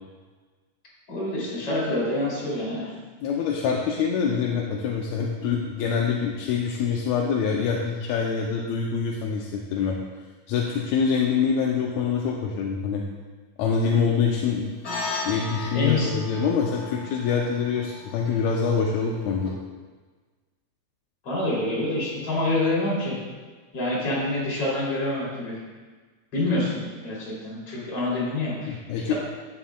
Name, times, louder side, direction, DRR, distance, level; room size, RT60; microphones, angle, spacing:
voice 1, 1.1-2.9 15.7-16.1 21.2-23.2 23.7-25.6 26.3-28.8 29.1-29.2, left 2 dB, 50° left, -6 dB, 4.0 m, -26 dB
voice 2, 3.2-10.0 10.5-13.0 13.6-14.8 15.2-19.5 28.7-29.1, left 6 dB, 80° left, -1 dB, 1.9 m, -25 dB
sound 1, 14.8-19.5, left 3 dB, 30° left, 1.3 m, -36 dB
11.0 x 9.1 x 2.3 m, 1.4 s
omnidirectional pair, 3.4 m